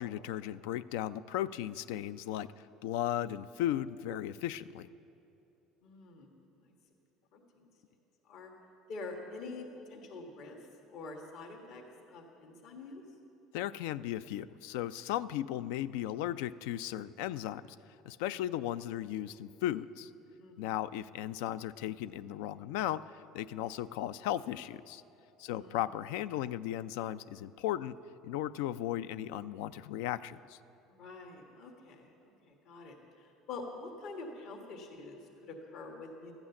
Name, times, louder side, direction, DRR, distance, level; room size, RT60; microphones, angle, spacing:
voice 1, 0.0-4.9 13.5-17.8 18.0-20.1 20.6-25.0 25.4-28.0 28.2-30.6, left 12 dB, 85° left, 16 dB, 0.3 m, -36 dB
voice 2, 5.8-6.3 6.6-6.7 7.3-7.6 8.3-8.5 8.9-10.6 10.9-11.8 12.1-13.0 20.4-20.5 25.5-25.8 30.9-32.1 32.4-36.3, left 3 dB, 60° left, 2 dB, 1.5 m, -46 dB
13.0 x 8.8 x 7.0 m, 2.8 s
cardioid pair, 125°, 0 cm